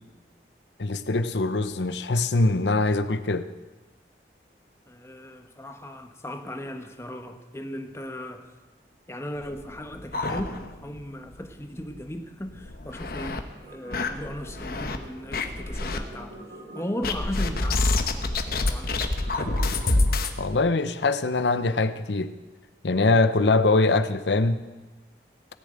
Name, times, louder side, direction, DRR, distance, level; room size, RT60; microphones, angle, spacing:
voice 1, 0.8-3.5 20.4-22.3 22.8-24.6, left 3 dB, 75° left, 10 dB, 0.8 m, -23 dB
voice 2, 4.9-8.5 9.1-10.5 10.8-16.4 16.7-18.3 18.6-19.6, left 1 dB, 15° left, 5 dB, 1.1 m, -37 dB
sound 1, 9.4-11.0 11.3-11.4 11.8-11.9 12.5-13.4 13.9-15.0 15.3-16.0 17.0-20.4, left 2 dB, 55° left, 1.0 m, -27 dB
sound 2, 13.5-20.2, right 1 dB, 60° right, 4.1 m, -46 dB
17.0 x 7.0 x 8.8 m, 1.2 s
head